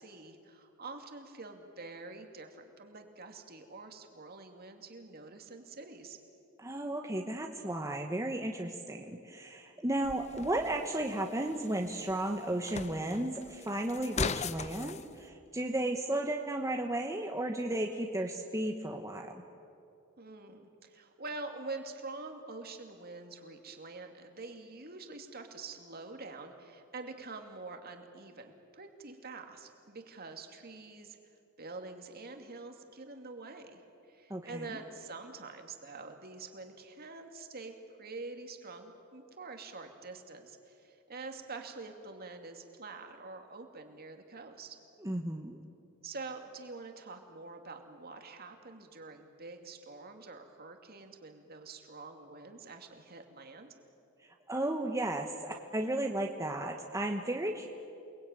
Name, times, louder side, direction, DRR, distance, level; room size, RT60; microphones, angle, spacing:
voice 1, 0.0-6.2 20.2-31.2 31.6-33.8 34.1-37.7 38.0-44.8 46.0-53.7, right 3 dB, 45° right, 5 dB, 2.5 m, -46 dB
voice 2, 6.6-19.3 34.3-34.7 45.0-45.6 54.5-57.7, right 1 dB, 15° right, 2 dB, 1.2 m, -34 dB
sound 1, 10.0-15.0, left 5 dB, 30° left, 0.6 m, -40 dB
29.0 x 20.5 x 9.2 m, 2.6 s
head